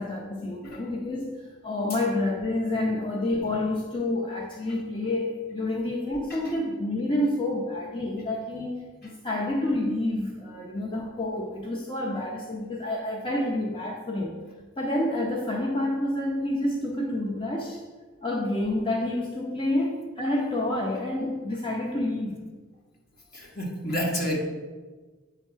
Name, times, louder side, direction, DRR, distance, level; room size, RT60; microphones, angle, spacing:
voice 1, 0.0-14.4 14.8-17.8 18.2-22.4, left 1 dB, 25° left, -2 dB, 0.7 m, -28 dB
voice 2, 23.3-24.4, equal, 50° left, -1 dB, 1.5 m, -30 dB
8.1 x 3.6 x 5.6 m, 1.3 s
head